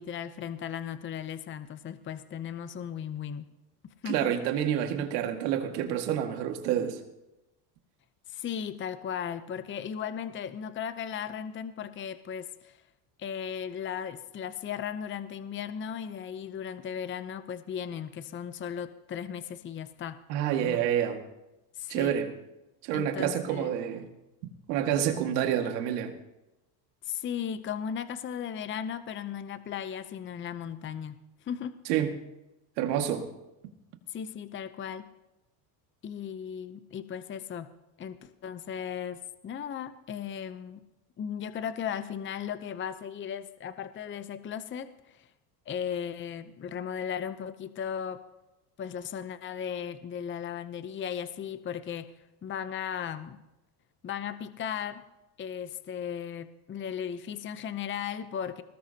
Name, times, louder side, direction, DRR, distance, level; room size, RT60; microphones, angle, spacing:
voice 1, 0.0-3.5 3.8-4.3 8.3-12.8 13.2-20.2 20.6-20.9 21.8-22.1 22.9-23.7 27.1-31.1 31.5-31.8 34.1-35.1 36.0-37.7 38.0-40.8 41.2-45.2 45.7-48.2 48.8-52.1 52.4-53.4 54.0-55.0 55.4-58.6, left 8 dB, 25° left, 12 dB, 0.7 m, -36 dB
voice 2, 4.1-7.0 20.3-21.2 21.9-22.3 22.8-24.1 24.7-26.1 31.9-32.2 32.8-33.3, right 10 dB, 90° right, 5 dB, 2.1 m, -28 dB
20.5 x 18.0 x 2.9 m, 0.94 s
supercardioid pair, 110°, 48 cm